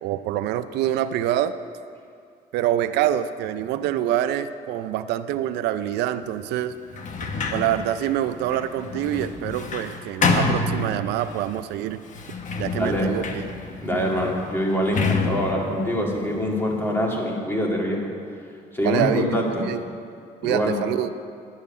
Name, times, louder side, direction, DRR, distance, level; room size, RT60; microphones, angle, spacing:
voice 1, 0.0-1.5 2.5-6.8 7.5-12.0 12.6-13.5 18.8-19.3 19.7-19.8 20.4-21.1, right 12 dB, 85° right, 11 dB, 0.5 m, -25 dB
Sliding door, 6.9-11.4 12.1-16.9, left 3 dB, 45° left, 1.2 m, -28 dB
voice 2, 12.7-13.2 13.8-18.1 18.7-19.8 20.4-20.8, equal, 15° left, -1 dB, 2.2 m, -24 dB
10.5 x 7.3 x 8.4 m, 2.4 s
cardioid pair, 110°, 17 cm